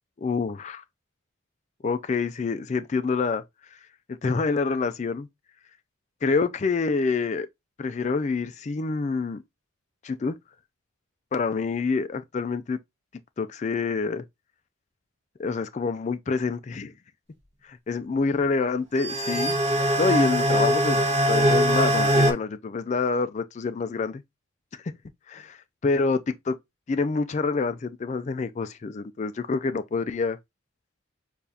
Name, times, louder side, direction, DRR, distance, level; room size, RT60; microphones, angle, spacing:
voice 1, 0.2-0.8 1.8-3.4 4.2-5.3 6.2-7.5 7.8-9.4 10.0-10.4 11.3-12.8 13.4-14.2 15.4-16.9 17.6-19.6 20.0-24.2 24.8-24.9 25.3-25.6 25.8-26.6 26.9-30.4, left 4 dB, 35° left, 0.3 m, -27 dB
sound 1, 19.0-22.3, equal, 35° right, 1.3 m, -22 dB
6.8 x 2.5 x 2.7 m
head